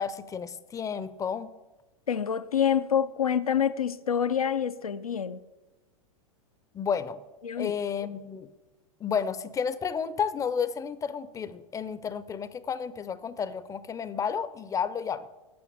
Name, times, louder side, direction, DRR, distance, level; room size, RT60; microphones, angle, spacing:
voice 1, 0.0-1.5 6.7-7.2 7.6-8.5 9.0-15.3, left 6 dB, 20° left, 0.5 m, -31 dB
voice 2, 2.1-5.4 7.4-7.7, left 8 dB, 90° left, 0.6 m, -27 dB
8.7 x 6.3 x 8.4 m
hypercardioid pair, 105°, 18 cm